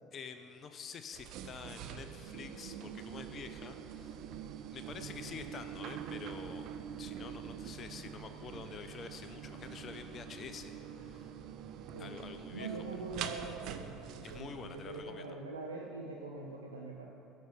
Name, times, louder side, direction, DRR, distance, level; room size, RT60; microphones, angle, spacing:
voice 1, 0.1-4.3 4.7-6.7 7.0-11.3 12.0-12.8 14.2-15.4, left 6 dB, 40° left, 9 dB, 0.6 m, -48 dB
sound 1, 1.1-15.0, right 8 dB, 55° right, 0.7 m, -45 dB
voice 2, 5.0-5.4 11.9-12.2 12.5-17.1, right 3 dB, 90° right, -1 dB, 0.8 m, -44 dB
14.5 x 6.4 x 5.0 m, 2.9 s
hypercardioid pair, 70°, 0 cm